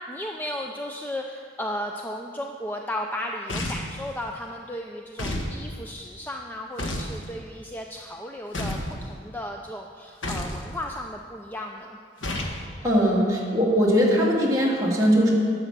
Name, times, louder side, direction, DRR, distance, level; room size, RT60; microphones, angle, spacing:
voice 1, 0.0-12.0, left 1 dB, 10° left, 2 dB, 0.4 m, -35 dB
sound 1, 3.5-4.0 5.2-5.5 6.8-7.2 8.5-8.9 10.2-10.6 12.2-12.6, left 1 dB, 85° left, 1.4 m, -30 dB
voice 2, 12.8-15.3, equal, 20° right, -5 dB, 2.2 m, -20 dB
11.5 x 8.0 x 5.9 m, 2.1 s
head